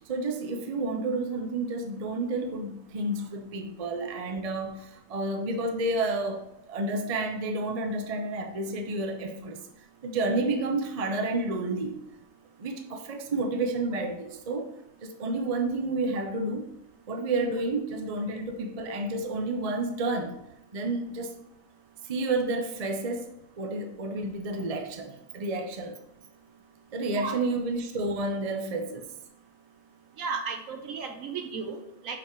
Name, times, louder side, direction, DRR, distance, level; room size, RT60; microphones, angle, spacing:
voice 1, 0.1-9.6 10.0-12.0 12.6-14.7 15.0-16.7 17.1-20.4 20.7-21.3 22.0-23.3 23.6-26.0 26.9-29.1, right 2 dB, 40° right, 0.5 m, -30 dB
voice 2, 30.2-32.2, right 5 dB, 65° right, 1.2 m, -34 dB
5.4 x 5.1 x 4.5 m
omnidirectional pair, 1.6 m